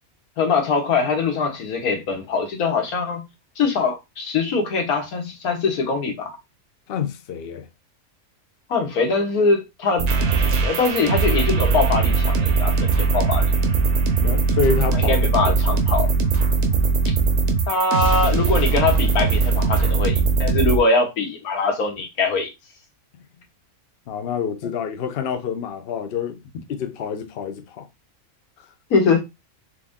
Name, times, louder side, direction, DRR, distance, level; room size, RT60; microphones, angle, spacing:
voice 1, 0.4-3.2 3.6-6.4 8.7-10.1 10.6-13.5 14.9-16.1 17.1-17.2 17.7-22.5 28.9-29.2, left 4 dB, 75° left, 1.6 m, -22 dB
voice 2, 6.9-7.7 14.2-15.8 24.1-26.4 26.7-27.9, left 6 dB, 60° left, 0.7 m, -27 dB
sound 1, 10.0-20.8, right 4 dB, 55° right, 1.0 m, -20 dB
4.5 x 2.7 x 3.5 m
omnidirectional pair, 1.6 m